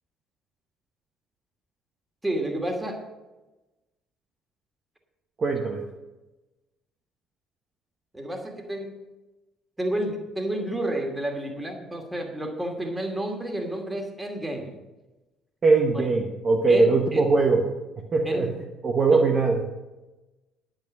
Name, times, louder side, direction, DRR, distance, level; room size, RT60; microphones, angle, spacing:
voice 1, 2.2-3.0 8.1-9.0 9.8-14.7 15.9-16.1 16.7-17.2 18.3-18.5 19.1-19.2, right 1 dB, 10° right, 3 dB, 2.5 m, -30 dB
voice 2, 5.4-5.8 15.6-17.7 18.1-18.5 18.8-19.6, right 3 dB, 35° right, 2 dB, 1.2 m, -21 dB
10.5 x 9.0 x 5.3 m, 1.1 s
figure-of-eight pair, 50°, 0 cm